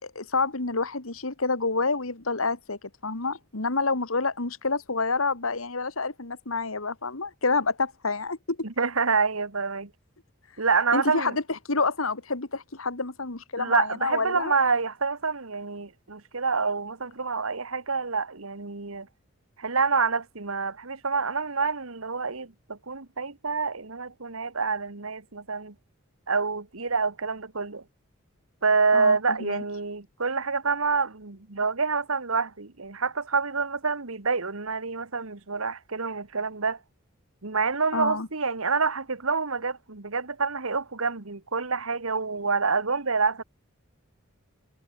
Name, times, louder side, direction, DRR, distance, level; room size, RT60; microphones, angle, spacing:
voice 1, 0.0-8.6 10.9-14.5 28.9-29.6 37.9-38.3, left 3 dB, 85° left, 2.3 m, -28 dB
voice 2, 8.6-9.9 10.6-11.4 13.6-19.1 19.6-25.7 26.3-27.8 28.6-36.8 37.4-43.4, right 4 dB, 90° right, 1.8 m, -27 dB
head